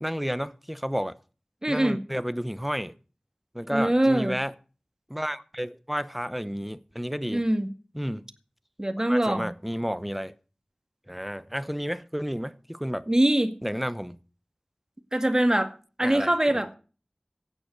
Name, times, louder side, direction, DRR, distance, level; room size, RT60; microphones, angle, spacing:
voice 1, 0.0-1.2 1.7-2.9 3.5-4.5 5.1-7.4 7.9-8.3 9.1-10.3 11.1-13.0 13.6-14.2 16.0-16.7, equal, 5° right, 1.0 m, -31 dB
voice 2, 1.6-2.0 3.7-4.4 7.3-7.7 8.8-9.5 13.1-13.6 15.1-15.7 16.0-16.7, right 1 dB, 30° right, 2.0 m, -23 dB
15.0 x 9.8 x 6.3 m
wide cardioid pair, 45°, 2 cm